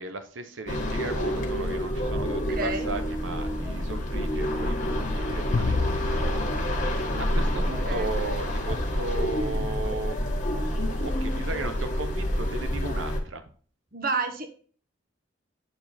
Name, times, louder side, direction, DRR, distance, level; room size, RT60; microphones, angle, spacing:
voice 1, 0.0-10.4 10.8-13.4, right 3 dB, 85° right, 8 dB, 1.0 m, -36 dB
sound 1, 0.7-13.2, equal, 40° left, 1.6 m, -28 dB
voice 2, 2.3-2.9 7.5-8.1 13.9-14.5, right 4 dB, 50° right, 6 dB, 1.1 m, -31 dB
sound 2, 5.5-8.0, left 4 dB, 60° left, 0.4 m, -31 dB
9.4 x 4.3 x 4.2 m, 0.42 s
head